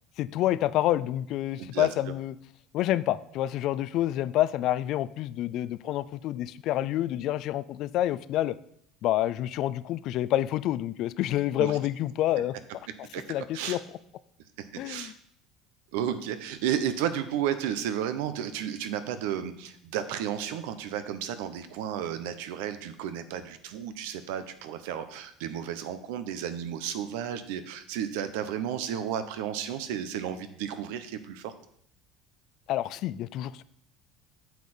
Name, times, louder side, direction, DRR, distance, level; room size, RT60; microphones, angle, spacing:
voice 1, 0.2-2.4 2.7-8.6 9.0-12.5 13.0-13.8 14.8-15.1 32.7-33.6, left 13 dB, 55° left, 17 dB, 0.4 m, -28 dB
voice 2, 1.6-1.9 11.6-11.7 13.1-13.2 13.5-13.8 14.6-15.1 15.9-31.5, right 9 dB, 85° right, 11 dB, 0.8 m, -33 dB
8.1 x 6.7 x 4.3 m, 0.69 s
cardioid pair, 145°, 0 cm